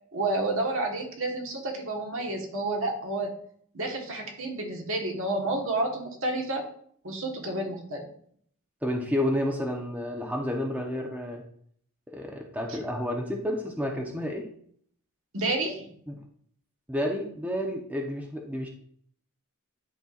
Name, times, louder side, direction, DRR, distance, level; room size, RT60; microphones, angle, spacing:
voice 1, 0.1-3.3 3.7-6.7 7.0-8.1 12.7-12.8 15.3-15.9, right 2 dB, 65° right, 1 dB, 1.4 m, -30 dB
voice 2, 8.8-11.4 12.1-14.5 16.1-16.2 16.9-18.7, left 1 dB, 5° right, 1 dB, 0.8 m, -30 dB
10.5 x 4.4 x 2.5 m, 0.62 s
head